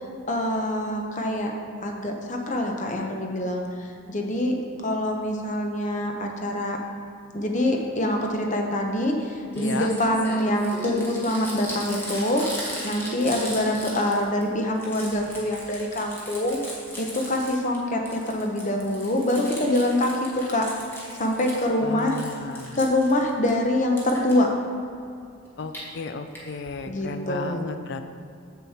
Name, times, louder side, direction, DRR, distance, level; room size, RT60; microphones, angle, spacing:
voice 1, 0.3-1.5 1.8-4.5 4.8-6.8 7.3-12.6 12.8-20.6 21.1-22.2 22.8-24.5 26.9-27.7, left 1 dB, 35° left, 2 dB, 0.9 m, -25 dB
Crumpling crinkling, 9.2-9.3 9.5-14.4 14.7-17.8 18.1-21.7 22.0-23.5 24.0-24.3 25.5-25.8 26.3-26.4 26.7-26.8 27.0-27.1, equal, 10° left, 1.4 m, -37 dB
voice 2, 9.5-9.9 21.8-22.8 25.6-28.0, left 4 dB, 55° left, 8 dB, 0.4 m, -34 dB
7.4 x 7.0 x 4.3 m, 2.5 s
head